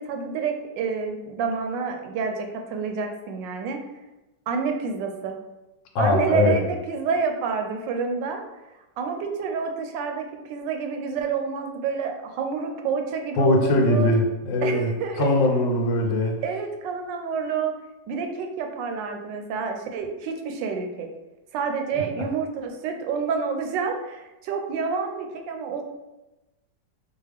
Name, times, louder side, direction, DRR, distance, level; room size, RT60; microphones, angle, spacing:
voice 1, 0.0-3.8 4.5-5.3 6.0-8.4 9.0-14.1 14.6-15.4 16.4-17.7 18.1-21.1 21.5-25.8, right 5 dB, 75° right, 4 dB, 1.2 m, -28 dB
voice 2, 5.9-6.6 13.4-16.4 21.9-22.0, left 2 dB, 75° left, 0 dB, 1.4 m, -21 dB
4.8 x 2.5 x 3.3 m, 1.0 s
omnidirectional pair, 2.1 m